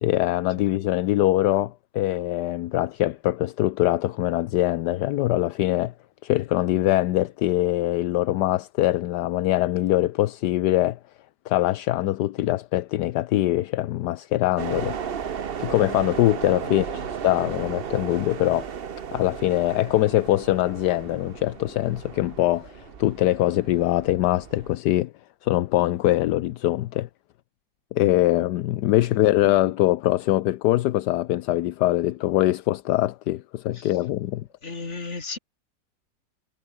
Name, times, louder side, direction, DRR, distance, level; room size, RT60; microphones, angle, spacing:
voice 1, 0.0-5.9 6.2-11.0 11.5-15.0 15.6-18.7 19.1-25.1 25.4-27.1 27.9-34.5, left 15 dB, 75° left, 1.2 m, -23 dB
sound 1, 14.6-24.8, right 7 dB, 45° right, 0.9 m, -35 dB
voice 2, 16.6-17.1 29.0-29.2 33.7-34.0 34.6-35.4, left 3 dB, 40° left, 3.1 m, -35 dB
omnidirectional pair, 1.9 m